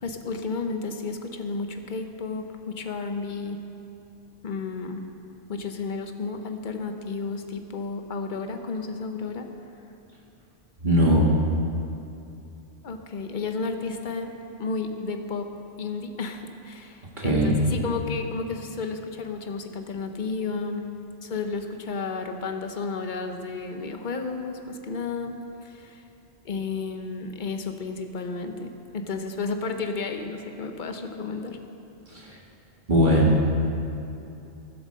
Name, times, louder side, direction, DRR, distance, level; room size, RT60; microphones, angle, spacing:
voice 1, 0.0-3.6 4.4-5.0 5.5-9.5 12.8-14.3 14.6-15.5 15.8-20.8 21.2-25.3 25.6-26.0 26.4-31.6, left 4 dB, 45° left, 5 dB, 0.9 m, -32 dB
voice 2, 10.8-11.3 17.2-17.6 32.1-32.4 32.9-33.5, equal, 40° right, -4 dB, 1.7 m, -20 dB
15.0 x 7.9 x 6.4 m, 2.7 s
omnidirectional pair, 1.2 m